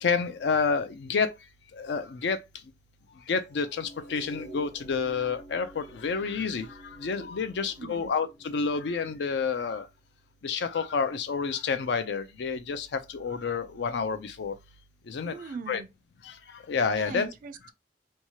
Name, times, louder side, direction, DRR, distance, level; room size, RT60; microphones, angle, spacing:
voice 1, 0.0-1.3 1.7-2.4 3.3-9.9 10.4-14.6 15.1-15.3 15.7-15.8 16.2-17.3, left 5 dB, 70° left, 0.4 m, -29 dB
sound 1, 3.4-9.7, right 1 dB, 40° left, 1.0 m, -49 dB
voice 2, 7.8-8.1 15.3-15.9 17.0-17.7, right 5 dB, 50° right, 0.3 m, -40 dB
2.9 x 2.3 x 2.8 m
head